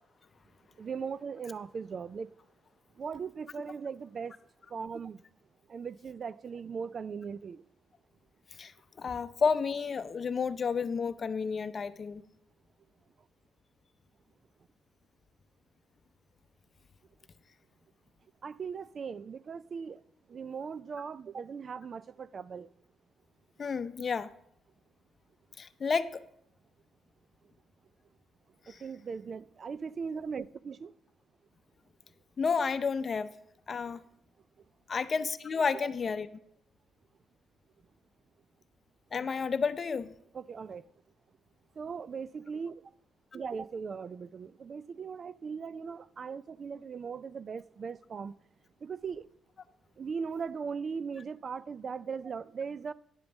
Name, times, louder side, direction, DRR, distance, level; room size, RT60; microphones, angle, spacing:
voice 1, 0.8-2.3 3.0-4.3 4.7-5.2 5.7-7.6 18.4-20.0 20.3-22.7 28.8-30.9 40.3-40.8 41.8-42.8 43.3-48.3 48.8-49.2 50.0-52.9, right 6 dB, 45° right, 0.3 m, -39 dB
voice 2, 9.0-12.2 23.6-24.3 25.6-26.1 32.4-33.3 33.7-34.0 34.9-36.3 39.1-40.1, left 5 dB, 40° left, 0.6 m, -31 dB
10.5 x 5.2 x 7.1 m
cardioid pair, 90°, 0 cm